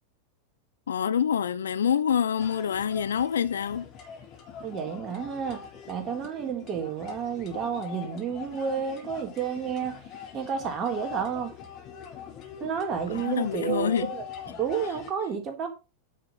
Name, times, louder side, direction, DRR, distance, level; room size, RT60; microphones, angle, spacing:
voice 1, 0.9-3.9 13.1-14.1, left 8 dB, 65° left, 0.6 m, -26 dB
sound 1, 2.4-15.1, left 7 dB, 35° left, 3.6 m, -43 dB
voice 2, 4.6-10.0 10.3-11.5 12.6-14.2 14.5-15.7, right 7 dB, 30° right, 3.6 m, -31 dB
10.0 x 6.4 x 5.5 m
figure-of-eight pair, 90°, 0 cm